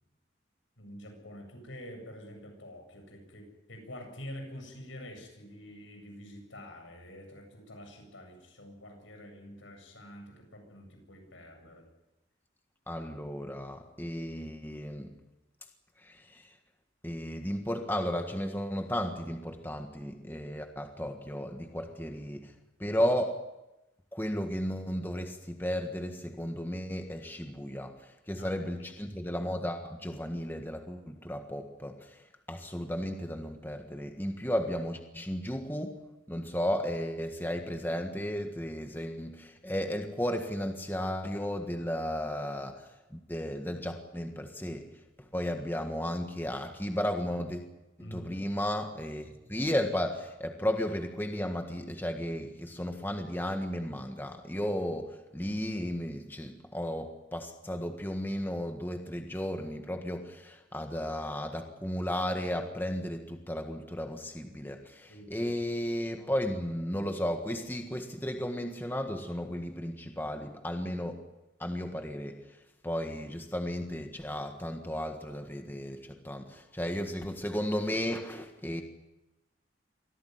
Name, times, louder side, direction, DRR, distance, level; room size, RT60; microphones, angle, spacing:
voice 1, 0.8-11.9 28.3-28.5 29.1-29.2 48.0-48.4 65.1-65.5, equal, 90° left, 3 dB, 7.8 m, -47 dB
voice 2, 12.9-15.2 16.0-16.5 17.0-22.5 22.8-23.5 24.1-47.7 48.0-71.3 71.6-78.8, equal, 10° left, 5 dB, 1.6 m, -34 dB
24.0 x 16.5 x 9.5 m, 0.97 s
head